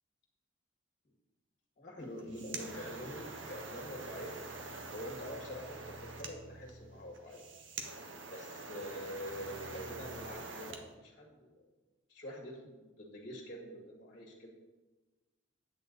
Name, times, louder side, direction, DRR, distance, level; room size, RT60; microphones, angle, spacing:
voice 1, 1.8-7.4 8.3-11.7 12.1-14.5, equal, 45° left, -1 dB, 1.8 m, -46 dB
sound 1, 2.0-10.8, right 3 dB, 80° right, 1.2 m, -46 dB
sound 2, 2.2-10.3, right 1 dB, 35° right, 1.2 m, -56 dB
10.0 x 8.6 x 4.0 m, 1.2 s
head